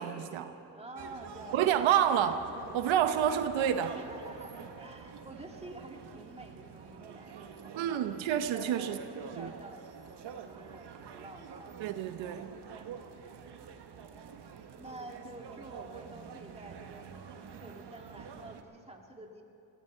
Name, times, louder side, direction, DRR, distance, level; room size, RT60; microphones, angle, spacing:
voice 1, 0.0-0.5 1.5-2.5 2.7-3.9 7.8-9.0 9.4-9.5 11.8-12.5, right 9 dB, 90° right, 9 dB, 0.9 m, -28 dB
voice 2, 0.7-1.7 2.4-2.9 3.9-7.9 8.5-11.7 12.6-12.9 13.2-13.6 14.1-14.3 14.8-19.4, right 2 dB, 15° right, 2 dB, 2.0 m, -49 dB
sound 1, 1.0-18.6, right 7 dB, 65° right, 1.3 m, -48 dB
19.5 x 16.5 x 4.5 m, 2.9 s
cardioid pair, 75°, 45 cm